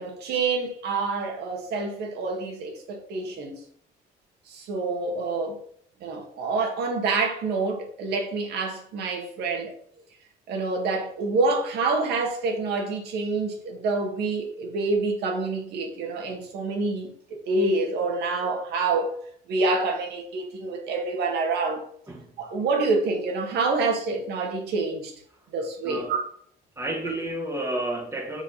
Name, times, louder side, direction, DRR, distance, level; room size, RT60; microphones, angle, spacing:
voice 1, 0.0-3.6 4.5-5.6 6.0-9.7 10.5-17.1 17.5-19.1 19.5-21.9 22.4-25.1 25.5-26.2 27.1-27.2, right 3 dB, 75° right, 1.8 m, -27 dB
voice 2, 26.8-28.4, right 1 dB, 15° right, 1.4 m, -31 dB
7.3 x 3.6 x 5.6 m
cardioid pair, 110°, 17 cm